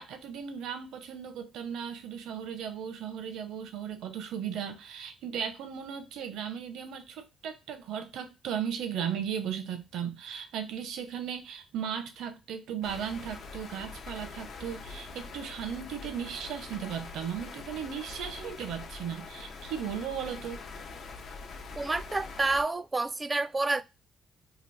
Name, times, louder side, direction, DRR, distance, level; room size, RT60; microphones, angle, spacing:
voice 1, 0.0-20.6, right 8 dB, 85° right, 0.6 m, -36 dB
sound 1, 12.8-22.6, left 4 dB, 65° left, 0.6 m, -44 dB
voice 2, 21.8-23.8, right 3 dB, 25° right, 0.3 m, -29 dB
2.9 x 2.4 x 3.2 m
cardioid pair, 90°, 0 cm